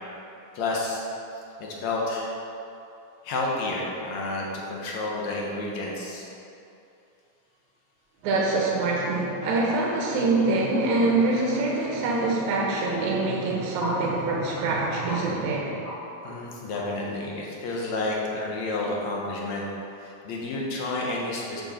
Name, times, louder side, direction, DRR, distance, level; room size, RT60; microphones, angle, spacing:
voice 1, 0.5-1.1 1.3-2.3 3.2-6.3 16.2-19.6 20.0-21.6, left 2 dB, 60° left, -3 dB, 2.2 m, -30 dB
voice 2, 8.2-15.7, right 2 dB, 65° right, -3 dB, 2.6 m, -25 dB
sound 1, 13.8-14.0 14.5-14.6 15.1-15.2 15.8-16.0 16.2-16.3 16.7-17.0, left 2 dB, 35° left, 1.6 m, -35 dB
9.3 x 7.1 x 4.4 m, 2.8 s
omnidirectional pair, 3.9 m